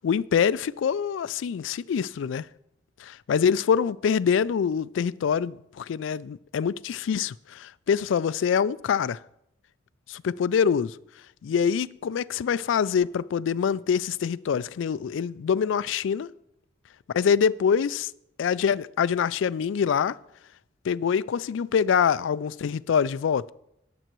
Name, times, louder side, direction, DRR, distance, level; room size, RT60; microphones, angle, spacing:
voice 1, 0.0-2.5 3.0-9.2 10.1-11.0 11.4-16.3 17.1-18.1 18.4-20.2 20.8-23.5, left 7 dB, 75° left, 0.3 m, -25 dB
19.5 x 7.7 x 3.0 m
head